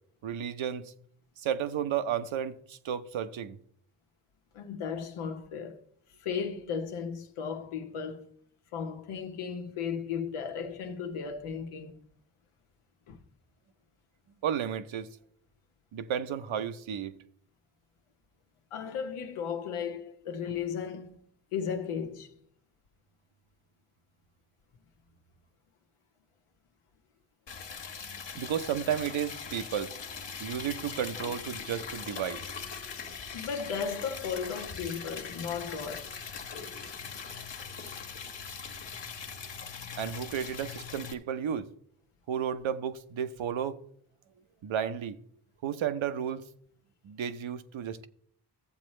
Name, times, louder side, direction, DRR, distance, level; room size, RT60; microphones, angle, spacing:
voice 1, 0.2-0.9 1.4-3.6 14.4-15.1 15.9-17.2 28.3-30.0 30.4-32.4 40.0-41.7 42.3-43.8 44.6-45.2 45.6-46.5 47.0-48.1, right 8 dB, 70° right, 0.9 m, -33 dB
voice 2, 4.5-5.8 6.2-8.3 8.7-11.9 13.1-13.2 18.7-21.2 21.5-22.3 27.7-27.8 33.3-36.1, left 6 dB, 85° left, 1.2 m, -35 dB
Liquid, 27.5-41.1, left 6 dB, 60° left, 1.4 m, -41 dB
14.5 x 7.5 x 3.2 m
supercardioid pair, 50°, 49 cm